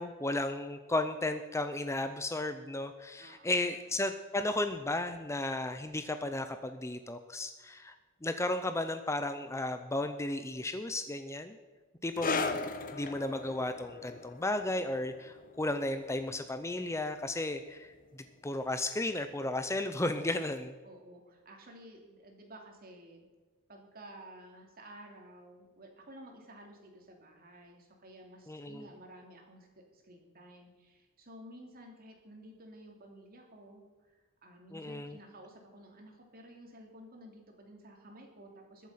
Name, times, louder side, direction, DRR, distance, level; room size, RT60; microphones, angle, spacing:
voice 1, 0.0-7.9 8.2-11.6 12.0-12.6 12.9-20.7 28.5-28.9 34.7-35.2, left 2 dB, 15° left, 9 dB, 0.6 m, -34 dB
voice 2, 3.2-3.8 20.8-23.2 23.7-38.9, right 1 dB, 45° right, 2 dB, 2.8 m, -53 dB
sound 1, 12.2-19.2 19.4-19.6 20.4-20.5, left 4 dB, 40° left, 1.0 m, -40 dB
21.5 x 7.5 x 5.7 m, 1.3 s
head